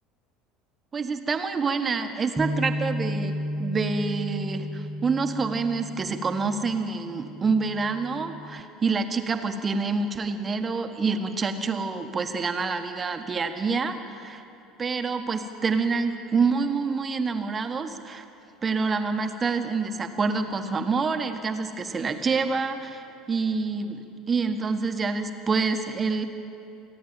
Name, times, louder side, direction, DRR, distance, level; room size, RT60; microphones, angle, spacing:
voice 1, 0.9-14.4 14.8-18.2 18.6-23.0 23.3-26.3, right 4 dB, 25° right, 7 dB, 1.4 m, -27 dB
Bass guitar, 2.4-8.6, equal, 5° right, 1.1 m, -33 dB
28.0 x 10.0 x 9.0 m, 2.7 s
figure-of-eight pair, 65°, 0 cm